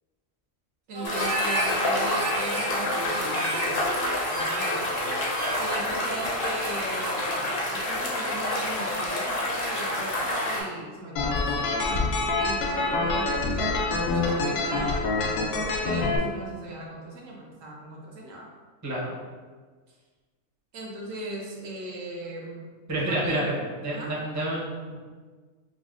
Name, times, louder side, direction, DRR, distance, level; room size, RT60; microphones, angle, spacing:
voice 1, 0.9-3.8 4.3-4.8 5.5-12.0 12.4-18.5 20.7-22.6 23.1-23.7 23.9-24.1, right 1 dB, 70° right, -2 dB, 1.0 m, -38 dB
Harmonica, 0.9-5.9, right 1 dB, 90° right, 1.4 m, -32 dB
sound 1, 1.0-10.6, left 1 dB, 55° left, 0.7 m, -28 dB
sound 2, 11.2-16.2, left 3 dB, 85° left, 1.0 m, -26 dB
voice 2, 18.8-19.1 22.9-25.0, right 1 dB, 20° right, -6 dB, 0.5 m, -29 dB
5.0 x 2.1 x 2.4 m, 1.4 s
omnidirectional pair, 1.4 m